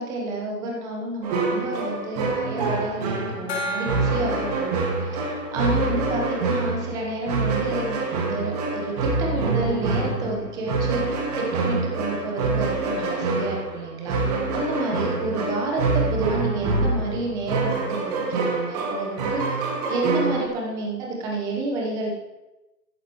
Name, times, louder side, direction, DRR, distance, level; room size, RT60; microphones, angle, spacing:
voice 1, 0.0-22.1, right 2 dB, 5° right, -1 dB, 0.9 m, -30 dB
sound 1, 1.2-20.5, right 3 dB, 25° right, 1.8 m, -26 dB
Gong, 3.5-6.7, equal, 40° left, 2.8 m, -35 dB
15.0 x 11.5 x 3.0 m, 1.0 s
figure-of-eight pair, 145°, 49 cm